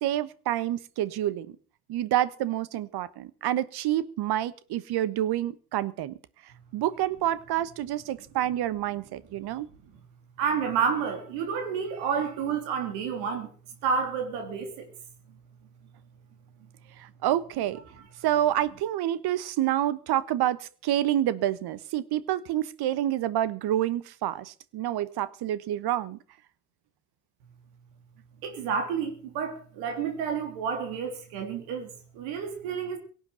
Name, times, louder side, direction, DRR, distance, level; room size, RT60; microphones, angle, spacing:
voice 1, 0.0-1.5 1.9-6.1 6.7-9.7 17.0-17.8 18.2-26.2, right 12 dB, 55° right, 1.3 m, -28 dB
voice 2, 10.4-13.5 13.8-14.9 28.4-33.0, right 6 dB, 70° right, 3.4 m, -30 dB
17.5 x 8.1 x 7.6 m
hypercardioid pair, 70°, 46 cm